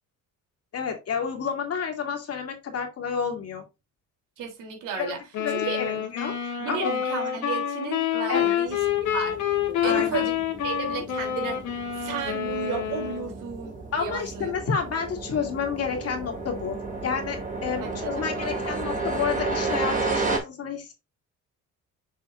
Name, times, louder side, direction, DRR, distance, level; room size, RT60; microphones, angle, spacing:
voice 1, 0.7-3.6 5.0-6.9 8.3-8.6 9.8-10.2 13.9-20.9, left 6 dB, 50° left, 2.6 m, -30 dB
voice 2, 4.4-5.2 5.5-6.0 6.6-9.4 9.8-10.3 10.6-11.6 11.9-14.5 17.8-18.8, right 6 dB, 75° right, 3.4 m, -34 dB
sound 1, 5.3-13.3, left 9 dB, 70° left, 2.3 m, -27 dB
sound 2, 8.7-20.4, right 3 dB, 25° right, 2.6 m, -33 dB
7.1 x 6.7 x 2.6 m
cardioid pair, 135°, 31 cm